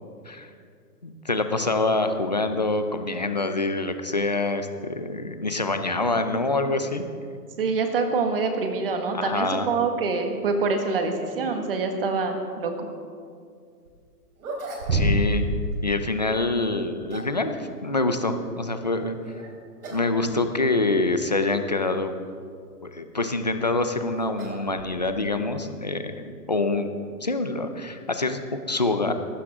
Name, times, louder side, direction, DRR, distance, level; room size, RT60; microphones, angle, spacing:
voice 1, 1.0-7.0 9.1-9.7 14.9-15.4 15.8-19.2 19.9-22.1 22.8-26.9 27.2-29.1, left 2 dB, 30° left, 7 dB, 0.5 m, -26 dB
voice 2, 7.6-12.7, right 4 dB, 35° right, 5 dB, 1.7 m, -25 dB
sound 1, 13.9-14.0 14.4-15.5 15.7-15.8 16.7-17.4 19.2-19.5 19.8-20.1 20.4-20.5 21.3-21.4 23.2-25.3, right 1 dB, 60° right, 4.8 m, -30 dB
19.0 x 16.0 x 3.7 m, 2.3 s
hypercardioid pair, 175°, 48 cm